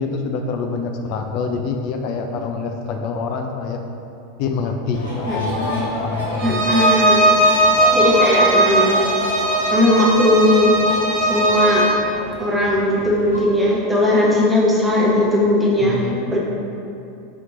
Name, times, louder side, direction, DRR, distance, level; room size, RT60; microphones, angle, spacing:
voice 1, 0.0-3.8 4.4-6.8 15.8-16.3, left 4 dB, 45° left, 4 dB, 0.3 m, -26 dB
sound 1, 4.9-13.4, left 1 dB, 75° left, 0.9 m, -29 dB
voice 2, 5.2-5.8 6.4-7.3 7.9-8.9 9.7-10.7 11.2-11.9 12.4-16.0 16.3-16.4, left 1 dB, 10° right, -5 dB, 1.0 m, -18 dB
Bowed string instrument, 6.4-12.0, right 1 dB, 45° right, 0.7 m, -18 dB
5.0 x 2.8 x 3.7 m, 2.7 s
figure-of-eight pair, 85°, 0 cm